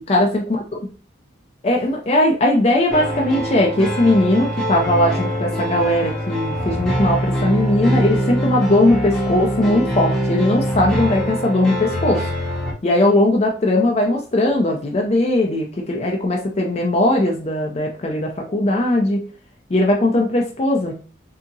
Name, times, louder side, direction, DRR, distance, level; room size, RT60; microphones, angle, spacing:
voice 1, 0.1-0.6 1.6-12.3 12.8-19.2 19.7-20.9, left 1 dB, 30° left, 0 dB, 0.4 m, -19 dB
sound 1, 2.9-12.7, equal, 5° left, 0.7 m, -23 dB
3.5 x 2.8 x 2.6 m, 0.40 s
head